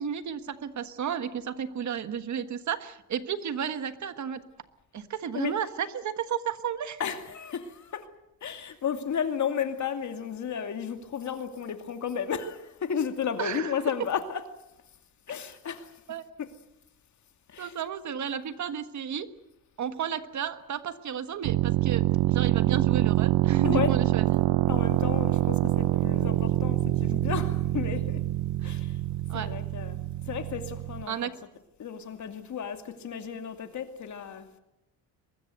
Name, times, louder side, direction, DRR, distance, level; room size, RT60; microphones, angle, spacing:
voice 1, 0.0-4.4 4.9-7.0 13.4-13.7 16.1-16.2 17.6-19.3 19.8-24.4 28.6-28.8 29.3-29.5 31.1-31.3, right 8 dB, 45° right, 1.4 m, -33 dB
voice 2, 7.0-8.1 8.4-14.5 15.3-15.9 16.4-16.5 17.5-17.8 23.6-24.0 24.7-28.2 28.6-29.0 29.3-31.3 31.8-34.6, left 7 dB, 45° left, 2.5 m, -33 dB
sound 1, 21.4-31.0, right 16 dB, 85° right, 0.8 m, -25 dB
23.5 x 21.0 x 8.0 m
cardioid pair, 140°, 39 cm